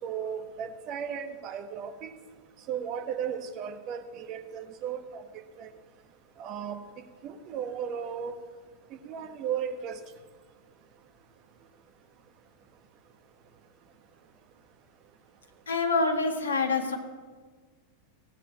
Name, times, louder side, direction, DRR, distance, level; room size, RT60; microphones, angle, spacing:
voice 1, 0.0-2.1 2.7-5.2 5.6-5.7 6.4-6.8 7.2-8.3 8.9-10.0, right 8 dB, 35° right, 6 dB, 1.3 m, -35 dB
voice 2, 15.7-17.0, left 3 dB, 70° left, 4 dB, 1.7 m, -26 dB
16.5 x 7.5 x 7.4 m, 1.5 s
figure-of-eight pair, 90°, 0 cm